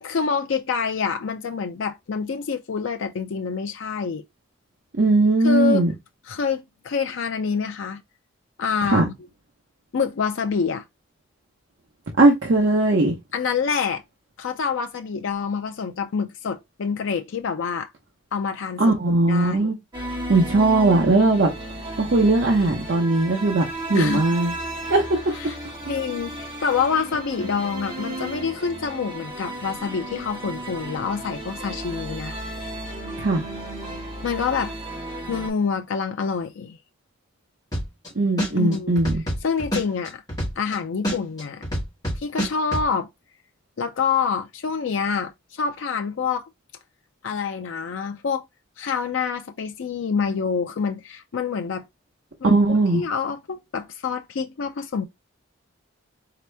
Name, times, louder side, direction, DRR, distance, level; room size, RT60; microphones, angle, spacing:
voice 1, 0.0-4.2 5.4-5.9 6.3-8.0 8.6-9.1 9.9-10.8 13.3-14.0 14.4-17.9 18.3-18.8 19.3-19.7 23.9-24.3 25.4-25.6 25.9-32.3 34.2-34.7 35.3-36.8 38.5-38.9 39.4-40.2 40.6-41.6 42.1-43.1 43.8-46.5 47.2-48.4 48.8-51.9 52.4-55.1, left 5 dB, 70° left, 0.4 m, -26 dB
voice 2, 5.0-5.9 8.8-9.0 12.2-13.1 18.8-19.8 20.3-21.5 22.0-24.5 24.9-25.5 33.2-33.4 38.1-39.2 52.4-53.0, right 2 dB, 60° right, 0.8 m, -19 dB
sound 1, 19.9-35.5, right 1 dB, 20° right, 1.5 m, -34 dB
sound 2, 37.7-38.1 38.4-40.7 41.0-42.8, equal, 20° left, 1.9 m, -26 dB
4.1 x 2.9 x 3.3 m
head